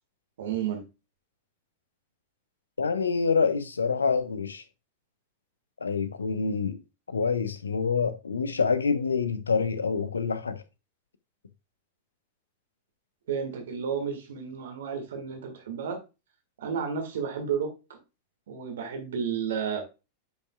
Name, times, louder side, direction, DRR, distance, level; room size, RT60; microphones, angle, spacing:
voice 1, 0.4-0.8 13.3-16.0 16.6-18.0 18.5-19.8, right 7 dB, 60° right, 1.7 m, -32 dB
voice 2, 2.8-4.6 5.8-6.8 7.1-10.6, left 5 dB, 75° left, 0.9 m, -26 dB
10.0 x 5.7 x 2.3 m
figure-of-eight pair, 90°, 0 cm